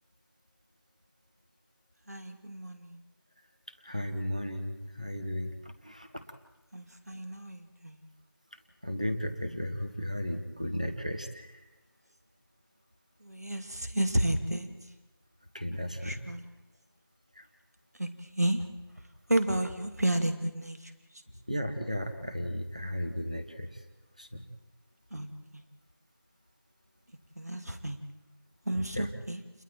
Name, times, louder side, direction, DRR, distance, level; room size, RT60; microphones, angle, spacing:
voice 1, 2.1-3.0 6.7-8.1 13.2-14.9 16.0-16.4 17.9-18.7 19.3-21.2 25.1-25.3 25.5-25.6 27.4-28.0 28.7-29.4, right 1 dB, 45° right, 7 dB, 2.2 m, -32 dB
voice 2, 3.8-5.5 5.8-6.2 8.8-11.6 15.5-16.2 17.4-17.5 21.5-23.7 24.2-24.4 28.9-29.1, equal, 20° right, 6 dB, 1.0 m, -34 dB
29.5 x 22.0 x 4.5 m, 1.0 s
figure-of-eight pair, 180°, 12 cm